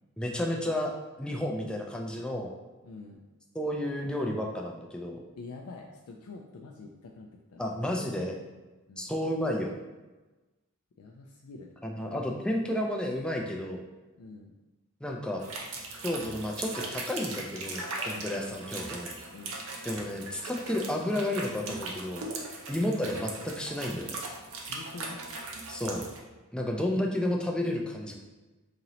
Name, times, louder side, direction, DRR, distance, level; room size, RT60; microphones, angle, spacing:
voice 1, 0.2-0.9 1.2-2.5 3.5-5.2 7.6-8.3 9.0-9.8 11.8-13.8 15.0-15.4 16.0-19.1 19.9-22.3 22.7-24.2 25.7-26.0 26.5-28.1, left 1 dB, 5° left, 0 dB, 0.3 m, -31 dB
voice 2, 2.8-3.2 5.4-7.9 8.9-9.1 11.0-11.8 14.2-14.5 18.1-18.4 19.3-19.6 24.7-25.2, left 3 dB, 75° left, 1 dB, 0.4 m, -46 dB
sound 1, 15.4-26.2, right 3 dB, 65° right, 0.6 m, -39 dB
2.9 x 2.9 x 3.9 m, 1.2 s
head